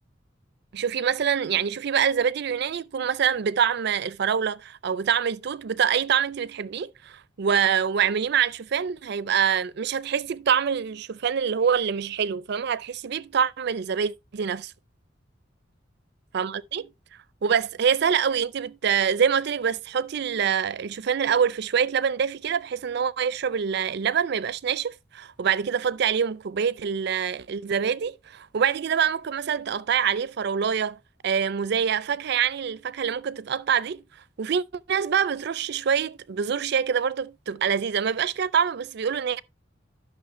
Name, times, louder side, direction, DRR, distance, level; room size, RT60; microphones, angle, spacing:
voice 1, 0.7-14.7 16.3-16.9 17.4-31.0 31.2-34.0 34.4-39.4, right 7 dB, 60° right, 0.4 m, -25 dB
11.0 x 6.2 x 3.0 m
head